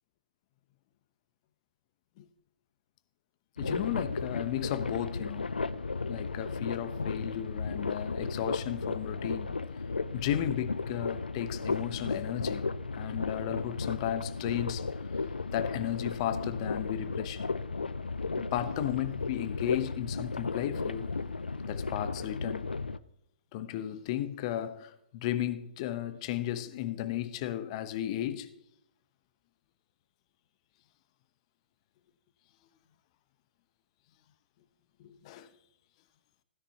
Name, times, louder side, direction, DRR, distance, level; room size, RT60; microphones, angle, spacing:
sound 1, 3.6-23.0, left 4 dB, 80° left, 0.6 m, -35 dB
voice 1, 3.6-5.5 6.1-9.6 10.1-12.6 12.9-14.8 15.5-17.5 18.3-21.1 21.6-22.7 23.5-28.5 35.0-35.5, left 12 dB, 40° left, 1.0 m, -34 dB
16.5 x 9.9 x 3.0 m
figure-of-eight pair, 120°, 5 cm